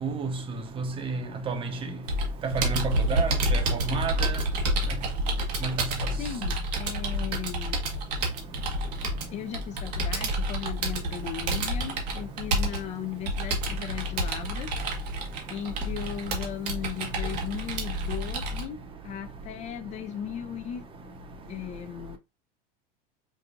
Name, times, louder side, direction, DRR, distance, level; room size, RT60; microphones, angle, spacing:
voice 1, 0.0-0.4 0.8-1.8 2.4-4.4 5.6-5.9, right 4 dB, 25° right, 0.8 m, -31 dB
Computer keyboard, 2.1-18.6, right 1 dB, 85° right, 1.2 m, -29 dB
voice 2, 6.1-8.0 9.3-15.0 15.5-20.9 21.5-22.2, left 9 dB, 35° left, 0.4 m, -37 dB
5.3 x 2.3 x 2.4 m
supercardioid pair, 125°, 20 cm